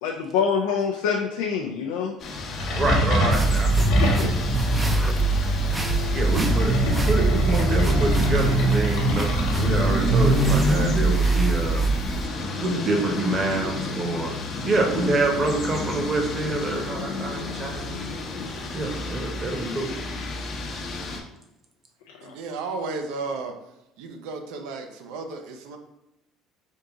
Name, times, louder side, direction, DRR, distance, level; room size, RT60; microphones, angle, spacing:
voice 1, 0.0-2.1 4.2-4.3 4.7-4.8 22.2-22.3, left 6 dB, 85° left, 0 dB, 0.4 m, -25 dB
sound 1, 2.2-21.2, left 3 dB, 50° left, 0.7 m, -33 dB
sound 2, 2.4-12.7, equal, 70° left, 1.0 m, -24 dB
voice 2, 2.7-4.4 6.1-9.3 9.5-11.8 12.6-14.3 14.6-18.0 18.7-19.9, right 2 dB, 40° right, 2 dB, 1.0 m, -26 dB
sound 3, 3.3-12.3, right 4 dB, 15° right, 0.5 m, -25 dB
voice 3, 22.2-23.5 24.0-25.8, right 3 dB, 80° right, 5 dB, 0.6 m, -33 dB
3.6 x 2.8 x 3.7 m, 0.90 s
supercardioid pair, 80°, 0 cm